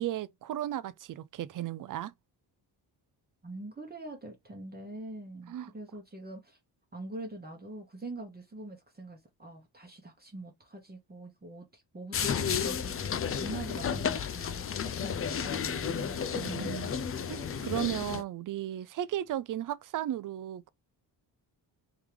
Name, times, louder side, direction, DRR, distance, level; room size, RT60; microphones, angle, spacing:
voice 1, 0.0-2.1 5.5-5.7 16.3-16.9 17.3-20.7, right 12 dB, 50° right, 0.4 m, -35 dB
voice 2, 3.4-6.6 6.9-16.9, right 2 dB, 20° right, 1.0 m, -44 dB
sound 1, 12.1-18.2, left 7 dB, 35° left, 0.4 m, -32 dB
3.6 x 3.1 x 3.3 m
cardioid pair, 110°, 44 cm